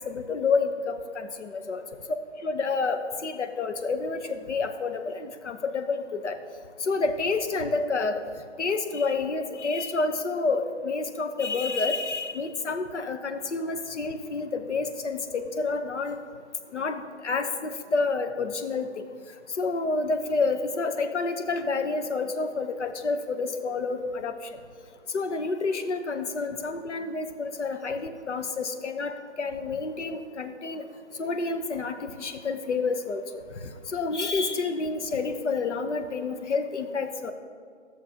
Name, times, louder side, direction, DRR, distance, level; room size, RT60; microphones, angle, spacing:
voice 1, 0.1-1.8 2.4-6.4 6.8-8.2 8.6-16.2 16.7-18.9 19.6-24.3 25.1-29.1 29.4-30.8 31.2-33.2 33.9-37.3, left 4 dB, 70° left, 8 dB, 0.9 m, -29 dB
13.0 x 6.6 x 2.8 m, 2.2 s
hypercardioid pair, 160°, 36 cm